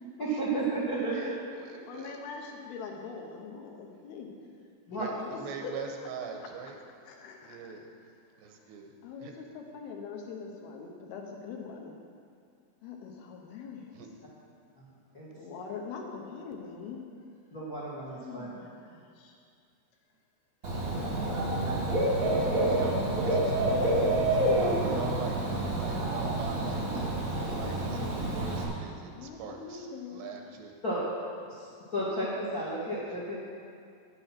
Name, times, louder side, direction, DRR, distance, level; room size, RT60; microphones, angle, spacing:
voice 1, 0.2-1.4 4.9-5.1 15.1-15.3 17.5-18.5 20.8-21.0 21.6-21.7 22.2-22.3 30.8-31.0 31.5-31.7 31.9-33.4, right 2 dB, 50° left, -6 dB, 1.0 m, -33 dB
voice 2, 1.1-2.2 4.9-5.1 5.4-6.8 7.4-7.9 8.4-8.9 9.2-9.3 13.9-14.1 22.3-30.7 33.1-33.2, right 5 dB, 85° right, 3 dB, 3.1 m, -43 dB
voice 3, 1.9-4.4 4.9-5.8 6.4-6.5 7.1-7.8 9.0-12.0 12.8-14.0 15.3-17.0 18.2-19.3 20.6-20.9 29.2-30.3, left 5 dB, 75° left, 1 dB, 2.7 m, -43 dB
Dog / Bird, 20.6-28.6, right 1 dB, 45° right, 1.0 m, -28 dB
9.7 x 9.1 x 5.8 m, 2.3 s
omnidirectional pair, 4.8 m